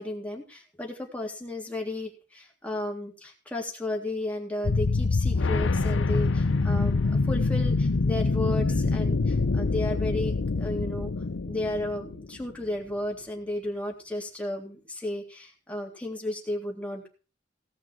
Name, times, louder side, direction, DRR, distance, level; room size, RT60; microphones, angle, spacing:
voice 1, 0.0-11.1 11.4-17.1, left 1 dB, 5° left, 0 dB, 3.4 m, -33 dB
sound 1, 4.6-12.4, left 3 dB, 85° left, 0.7 m, -25 dB
17.5 x 6.2 x 6.3 m, 0.35 s
head